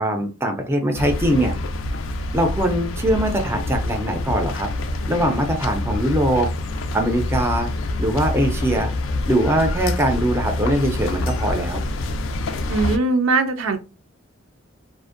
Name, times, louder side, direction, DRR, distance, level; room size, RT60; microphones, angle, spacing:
voice 1, 0.0-1.5 2.3-4.7 5.1-6.5 6.9-7.7 8.0-8.9 9.2-11.8, right 1 dB, 10° right, 4 dB, 0.4 m, -21 dB
sound 1, 0.9-13.0, left 2 dB, 75° left, 0.3 m, -26 dB
voice 2, 12.7-13.8, right 3 dB, 85° right, 7 dB, 0.4 m, -20 dB
2.5 x 2.1 x 2.4 m, 0.32 s
head